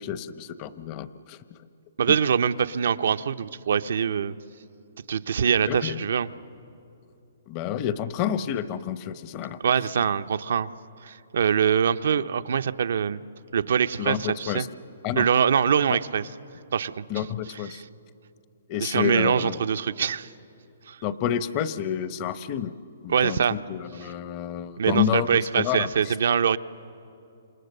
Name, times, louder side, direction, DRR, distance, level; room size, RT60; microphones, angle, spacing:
voice 1, 0.0-1.4 5.7-6.1 7.5-9.6 14.0-14.7 15.0-15.3 15.9-16.0 17.1-17.8 18.7-19.6 21.0-22.7 23.0-25.3 25.5-25.9, left 9 dB, 35° left, 14 dB, 0.9 m, -29 dB
voice 2, 2.0-4.3 5.1-6.3 9.6-10.7 11.0-13.2 13.5-14.7 15.2-16.3 16.7-16.9 17.7-17.8 18.8-20.3 20.9-21.0 23.1-23.6 24.8-26.6, right 7 dB, 70° right, 11 dB, 0.7 m, -23 dB
29.0 x 27.0 x 6.7 m, 2.7 s
hypercardioid pair, 145°, 0 cm